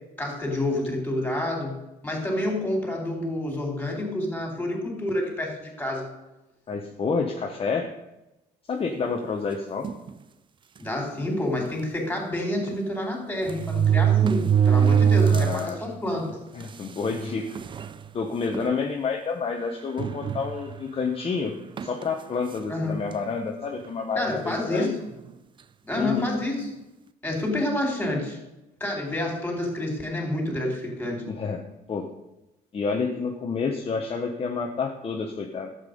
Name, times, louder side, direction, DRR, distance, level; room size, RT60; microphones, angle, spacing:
voice 1, 0.2-1.7 2.0-6.1 10.8-16.4 22.7-23.1 24.1-24.9 25.8-26.7 27.2-28.4 28.8-31.2, left 1 dB, 10° left, 1 dB, 4.0 m, -28 dB
voice 2, 6.7-7.9 8.7-9.9 15.2-15.8 16.5-17.6 18.1-24.9 25.9-26.3 31.2-31.6 31.9-32.1 32.7-35.7, left 5 dB, 35° left, 2 dB, 1.1 m, -29 dB
sound 1, 9.8-10.1 10.9-11.0 11.3-11.4 12.7-12.8 13.5-15.7 16.2-16.3 17.1-17.2 17.6-17.9 18.5-18.7 20.0-20.8 21.8-22.0, right 8 dB, 30° right, 0.4 m, -22 dB
11.5 x 8.2 x 5.3 m, 0.96 s
cardioid pair, 110°, 17 cm